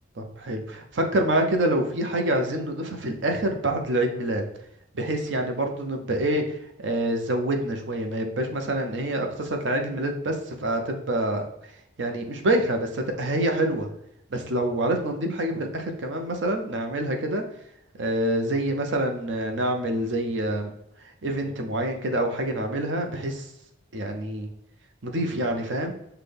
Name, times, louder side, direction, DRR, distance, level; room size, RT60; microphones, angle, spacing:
voice 1, 0.2-4.4 4.9-11.5 12.0-13.9 14.3-17.4 18.0-20.7 21.2-23.5 23.9-24.5 25.0-25.9, right 1 dB, 75° right, 4 dB, 0.7 m, -26 dB
5.9 x 2.2 x 3.4 m, 0.81 s
head